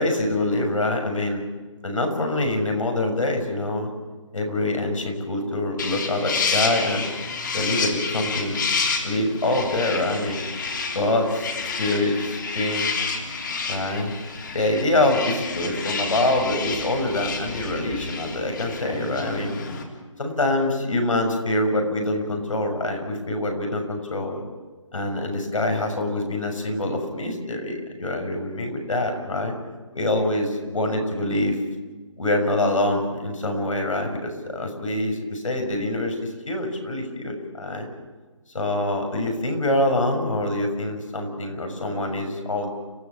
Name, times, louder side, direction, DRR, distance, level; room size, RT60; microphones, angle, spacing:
voice 1, 0.0-1.4 1.8-3.9 4.3-7.1 7.5-8.7 9.0-10.4 10.9-11.5 11.8-12.9 13.7-14.1 14.5-19.5 20.2-24.4 24.9-29.5 29.9-31.6 32.2-36.1 36.5-37.9 38.5-42.7, left 1 dB, 80° left, 3 dB, 6.6 m, -25 dB
sound 1, 5.8-19.8, left 4 dB, 40° left, 3.4 m, -29 dB
30.0 x 16.0 x 7.4 m, 1.3 s
hypercardioid pair, 165°, 16 cm